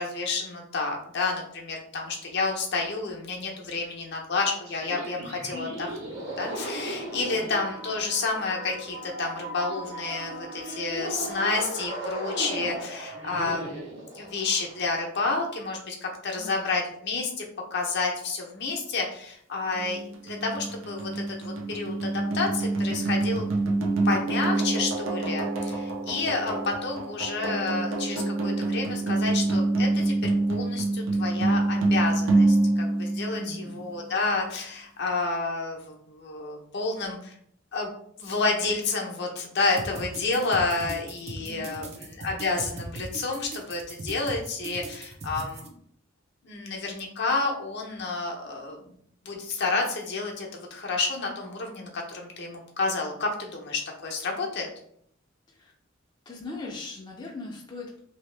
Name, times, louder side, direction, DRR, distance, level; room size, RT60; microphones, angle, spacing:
voice 1, 0.0-5.9 6.4-17.5 17.7-23.4 24.0-37.3 37.7-37.9 38.2-45.7 46.4-49.0 49.2-54.7, left 3 dB, 60° left, 0 dB, 0.7 m, -30 dB
sound 1, 4.6-14.8, right 1 dB, 60° right, 1.3 m, -37 dB
voice 2, 5.5-5.9 7.3-7.5 16.3-16.7 33.4-33.8 41.4-42.0 55.5-55.7 56.3-58.0, left 3 dB, 20° left, -3 dB, 0.5 m, -40 dB
sound 2, 19.7-33.9, right 2 dB, 85° right, 0.6 m, -26 dB
sound 3, 39.8-45.7, right 2 dB, 35° right, 0.5 m, -39 dB
2.9 x 2.7 x 3.2 m, 0.67 s
head